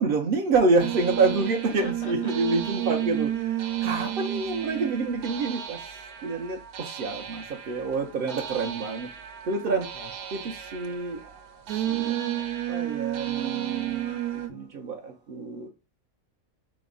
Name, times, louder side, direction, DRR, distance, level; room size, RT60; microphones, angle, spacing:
voice 1, 0.0-9.1 9.4-11.4 11.7-15.7, right 3 dB, 65° right, 0.5 m, -28 dB
sound 1, 0.8-14.5, right 12 dB, 85° right, 1.1 m, -32 dB
voice 2, 1.8-2.3 9.9-10.5, left 5 dB, 65° left, 0.7 m, -43 dB
5.0 x 2.0 x 3.7 m
omnidirectional pair, 1.5 m